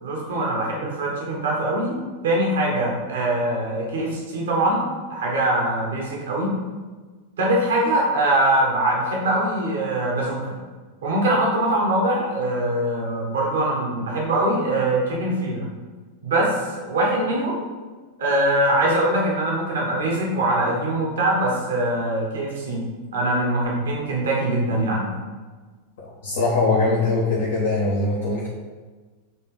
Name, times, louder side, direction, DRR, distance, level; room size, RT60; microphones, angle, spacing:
voice 1, 0.0-1.9 2.2-4.8 5.1-6.5 7.4-10.6 11.0-15.7 16.2-17.6 18.2-22.9 23.1-25.1, right 1 dB, 60° right, -2 dB, 1.3 m, -22 dB
voice 2, 26.0-28.5, left 3 dB, 60° left, -7 dB, 1.2 m, -22 dB
7.5 x 3.5 x 3.8 m, 1.4 s
figure-of-eight pair, 90°, 0 cm